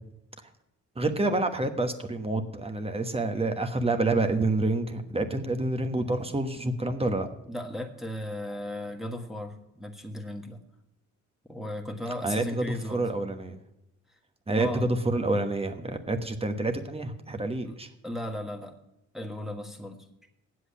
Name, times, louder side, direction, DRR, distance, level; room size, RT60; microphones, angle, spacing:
voice 1, 1.0-7.3 12.2-13.6 14.5-17.9, right 2 dB, 20° right, 6 dB, 1.2 m, -28 dB
voice 2, 7.4-10.6 11.5-13.1 14.6-14.9 17.6-17.8 18.0-18.8 19.1-20.0, left 1 dB, ahead, 2 dB, 1.4 m, -36 dB
8.4 x 7.8 x 8.4 m, 0.88 s
cardioid pair, 90°, 30 cm